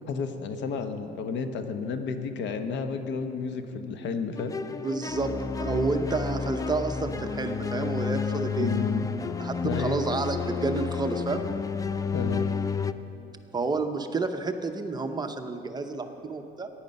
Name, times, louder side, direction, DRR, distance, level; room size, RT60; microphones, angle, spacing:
voice 1, 0.1-4.5 8.6-9.1 9.6-10.0 12.1-12.5, left 5 dB, 65° left, 8 dB, 1.0 m, -31 dB
sound 1, 4.4-12.9, left 5 dB, 15° left, 0.4 m, -30 dB
voice 2, 4.8-5.3 5.6-8.7 9.4-11.4 13.5-16.7, right 3 dB, 20° right, 6 dB, 0.8 m, -30 dB
14.5 x 10.0 x 5.4 m, 2.9 s
cardioid pair, 105°, 20 cm